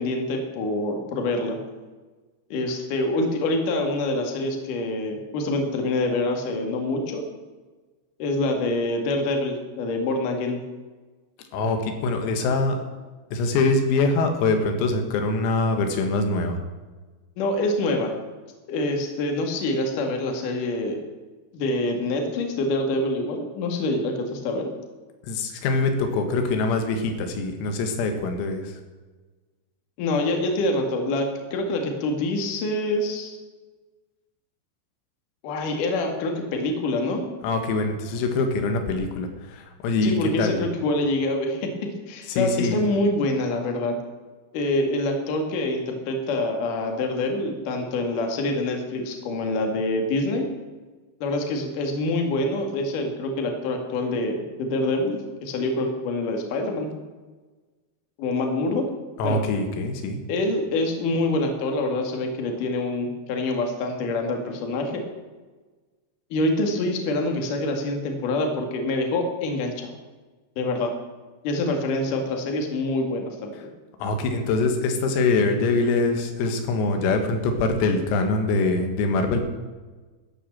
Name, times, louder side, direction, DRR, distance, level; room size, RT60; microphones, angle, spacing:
voice 1, 0.0-1.6 2.5-7.2 8.2-10.6 17.4-18.1 18.7-21.0 21.5-24.7 30.0-33.4 35.4-37.3 40.0-41.7 42.1-44.0 44.5-50.5 51.2-56.9 58.2-58.9 59.2-59.4 60.3-65.0 66.3-69.9 70.6-70.9 71.4-73.7, left 2 dB, 50° left, 3 dB, 2.8 m, -26 dB
voice 2, 11.5-12.8 13.3-16.6 25.2-28.7 37.4-40.6 42.3-42.9 59.2-60.2 74.0-79.4, left 3 dB, 90° left, 5 dB, 4.4 m, -24 dB
13.5 x 10.0 x 7.5 m, 1.3 s
omnidirectional pair, 6.0 m